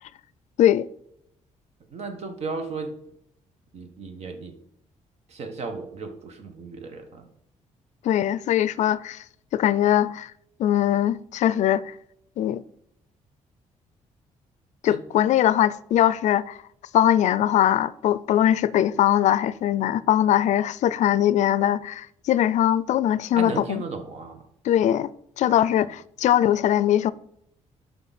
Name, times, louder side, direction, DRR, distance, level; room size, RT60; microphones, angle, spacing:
voice 1, 1.9-2.9 3.7-4.6 5.3-7.3 14.8-15.0 23.3-24.4, right 4 dB, 55° right, 1.5 m, -35 dB
voice 2, 8.0-9.2 9.5-10.3 10.6-11.9 12.4-12.6 14.8-16.6 16.9-23.8 24.6-25.1 25.4-27.1, left 11 dB, 65° left, 0.4 m, -21 dB
9.8 x 5.7 x 4.2 m
cardioid pair, 135°, 13 cm